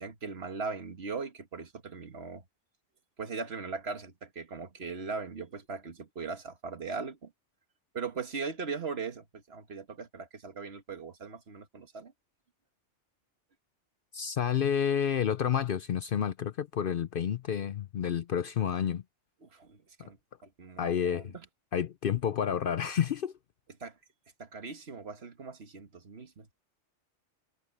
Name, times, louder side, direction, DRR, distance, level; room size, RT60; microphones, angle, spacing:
voice 1, 0.0-2.4 3.2-7.3 7.9-12.1 19.4-20.2 20.4-21.5 23.8-24.0 24.4-26.5, right 4 dB, 60° right, 1.7 m, -39 dB
voice 2, 14.1-19.0 20.8-21.3 21.7-23.3, left 8 dB, 60° left, 0.7 m, -30 dB
omnidirectional pair, 1.2 m